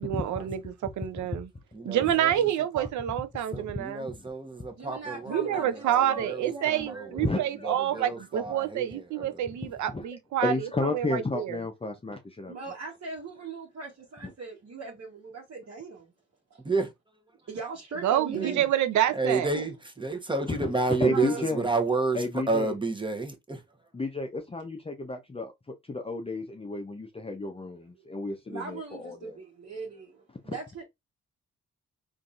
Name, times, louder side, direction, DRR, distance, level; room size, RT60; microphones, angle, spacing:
voice 1, 0.0-1.5 1.8-4.1 5.3-10.5 10.9-11.6 18.0-19.5, right 11 dB, 80° right, 0.6 m, -28 dB
voice 2, 1.7-2.9 3.5-9.4 16.6-16.9 18.3-18.7 19.1-23.6, right 3 dB, 15° right, 1.0 m, -31 dB
voice 3, 4.7-7.1 12.5-16.1 16.5-16.6 17.5-18.7 19.5-19.6 21.1-21.4 28.5-30.8, right 4 dB, 55° right, 1.2 m, -39 dB
voice 4, 7.2-8.1 9.6-10.1 10.4-12.6 14.2-14.3 20.5-20.7 21.0-21.6 22.1-22.7 23.9-29.4 30.4-30.5, left 2 dB, 20° left, 0.6 m, -32 dB
3.8 x 2.6 x 2.4 m
cardioid pair, 60°, 29 cm